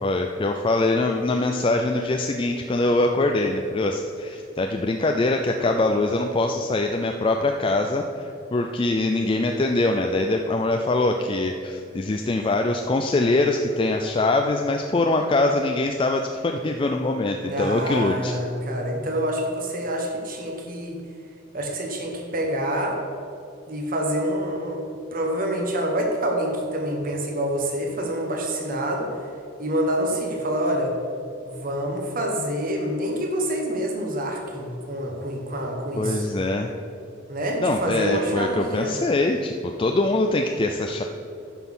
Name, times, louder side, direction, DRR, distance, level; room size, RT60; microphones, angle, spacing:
voice 1, 0.0-18.3 36.0-36.7 37.6-41.0, left 2 dB, 25° left, 3 dB, 0.4 m, -23 dB
voice 2, 17.4-21.0 21.5-23.0 23.7-24.8 25.1-29.1 29.6-31.0 31.4-36.3 37.3-39.0, equal, 45° right, 2 dB, 1.4 m, -27 dB
10.0 x 6.2 x 5.5 m, 2.6 s
head